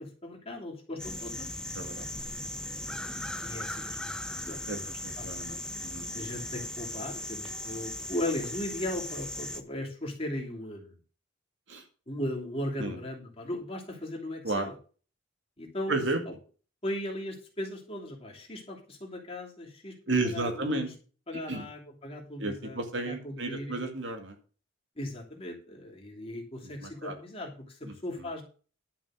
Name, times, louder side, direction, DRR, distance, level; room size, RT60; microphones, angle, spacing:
voice 1, 0.0-1.5 3.4-5.3 6.1-11.0 12.1-14.7 15.6-16.0 16.3-16.4 16.8-19.9 20.3-20.9 21.3-23.8 25.0-28.4, left 1 dB, 30° left, -1 dB, 3.0 m, -37 dB
sound 1, 1.0-9.6, left 1 dB, 5° left, 0.7 m, -38 dB
voice 2, 1.8-2.1 4.7-6.1 11.7-11.8 12.8-13.0 14.4-14.7 15.9-16.2 20.1-20.9 21.5-21.7 22.4-24.3 26.8-27.1 27.8-27.9, right 2 dB, 65° right, 5 dB, 2.1 m, -32 dB
11.5 x 6.0 x 6.4 m, 0.38 s
head